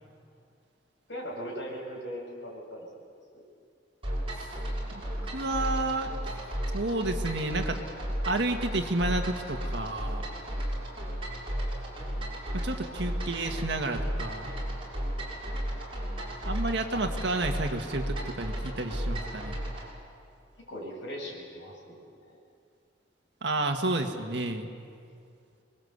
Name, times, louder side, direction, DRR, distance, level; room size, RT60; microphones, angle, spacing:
voice 1, 1.1-2.8 3.3-3.4 20.7-22.4, equal, 70° left, -2 dB, 7.6 m, -39 dB
sound 1, 4.0-19.9, equal, 30° right, 6.6 m, -34 dB
voice 2, 5.3-6.1 6.7-7.8 8.3-10.2 12.5-14.5 16.4-19.6 23.4-24.7, right 2 dB, 60° right, 4 dB, 2.0 m, -31 dB
27.0 x 21.5 x 8.2 m, 2.4 s
head